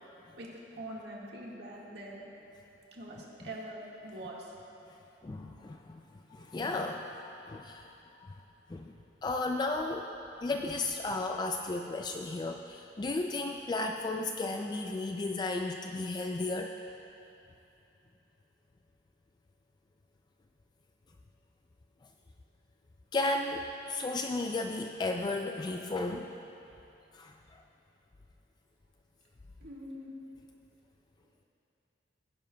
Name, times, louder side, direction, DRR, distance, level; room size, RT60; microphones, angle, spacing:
voice 1, 0.8-2.3 2.9-4.5 29.6-30.1, right 1 dB, 65° right, -4 dB, 1.7 m, -43 dB
voice 2, 5.2-6.0 6.3-7.9 8.2-8.3 8.7-8.9 9.2-10.1 10.4-16.7 23.1-26.3 27.1-27.3, left 2 dB, 25° left, 3 dB, 0.3 m, -34 dB
17.0 x 10.5 x 2.3 m, 2.9 s
head